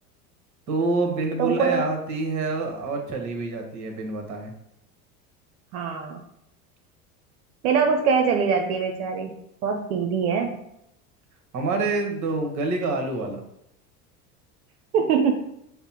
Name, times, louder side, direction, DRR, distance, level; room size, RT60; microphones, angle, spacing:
voice 1, 0.7-4.5 11.5-13.4, right 3 dB, 40° right, 3 dB, 1.0 m, -27 dB
voice 2, 1.4-1.8 5.7-6.2 7.6-9.3 9.6-10.6 14.9-15.3, right 6 dB, 70° right, 4 dB, 0.6 m, -23 dB
5.5 x 2.0 x 2.8 m, 0.79 s
hypercardioid pair, 80°, 45 cm